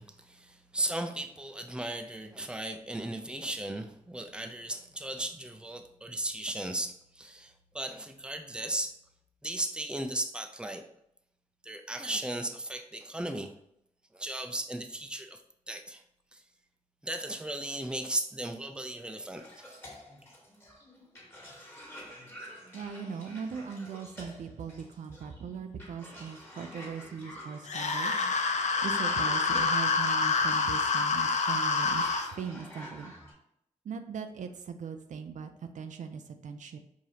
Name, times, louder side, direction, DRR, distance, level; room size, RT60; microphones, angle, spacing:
voice 1, 0.0-8.9 9.4-10.8 11.6-13.5 14.1-15.4 15.7-16.0 16.3-16.4 17.0-19.8, right 1 dB, 5° right, 6 dB, 0.5 m, -36 dB
Cough, 19.3-33.3, equal, 15° left, 1.5 m, -50 dB
voice 2, 22.7-28.1 28.8-32.1 32.4-33.1 33.8-36.8, right 6 dB, 70° right, 7 dB, 0.4 m, -39 dB
sound 1, 27.7-32.3, left 4 dB, 65° left, 0.5 m, -27 dB
4.8 x 2.7 x 2.8 m, 0.75 s
cardioid pair, 50°, 13 cm